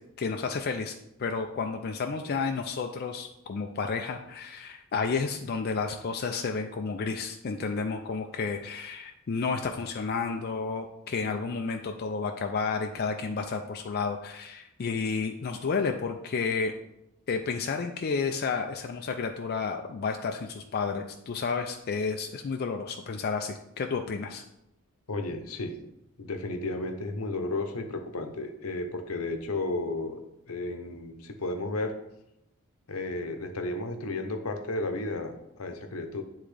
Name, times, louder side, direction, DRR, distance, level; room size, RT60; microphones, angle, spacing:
voice 1, 0.2-0.9 1.2-16.7 17.3-24.4, left 5 dB, 45° left, 4 dB, 0.4 m, -31 dB
voice 2, 25.1-25.8 26.2-30.2 30.5-32.0 32.9-36.2, left 2 dB, 80° left, 6 dB, 0.8 m, -33 dB
9.8 x 3.6 x 3.3 m, 0.84 s
head